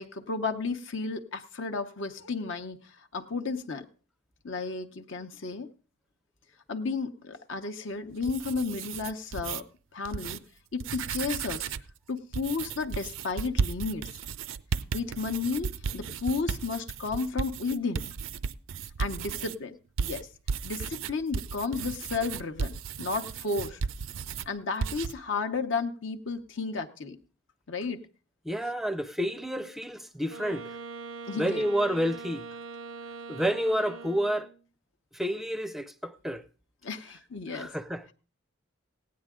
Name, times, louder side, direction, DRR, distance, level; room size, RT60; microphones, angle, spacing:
voice 1, 0.0-3.9 4.4-5.7 6.7-9.6 9.9-10.4 10.7-11.7 12.1-14.1 14.9-18.1 19.0-20.3 20.6-23.8 24.5-27.2 27.7-28.0 31.3-31.7 36.8-37.7, left 4 dB, 60° left, 0.8 m, -33 dB
sound 1, 8.1-9.6 10.0-10.4 10.7-11.9 12.3-19.6 20.0-24.5 24.8-25.1, right 6 dB, 65° right, 0.5 m, -34 dB
voice 2, 28.4-30.8 31.4-32.5 33.3-34.5 35.1-36.4 37.5-38.1, equal, ahead, 0.5 m, -30 dB
Wind instrument woodwind instrument, 30.3-34.6, right 4 dB, 90° right, 0.8 m, -42 dB
16.5 x 9.5 x 3.7 m
head